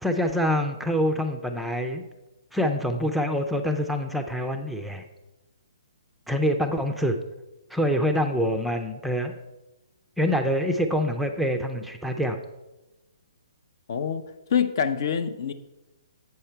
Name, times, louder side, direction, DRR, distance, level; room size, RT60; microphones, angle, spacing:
voice 1, 0.0-2.0 2.5-5.1 6.3-7.2 7.7-9.3 10.2-12.4, equal, ahead, 5 dB, 0.5 m, -25 dB
voice 2, 13.9-14.2 14.5-15.5, left 7 dB, 50° left, 11 dB, 0.5 m, -25 dB
8.3 x 5.5 x 4.4 m, 1.0 s
figure-of-eight pair, 130°, 3 cm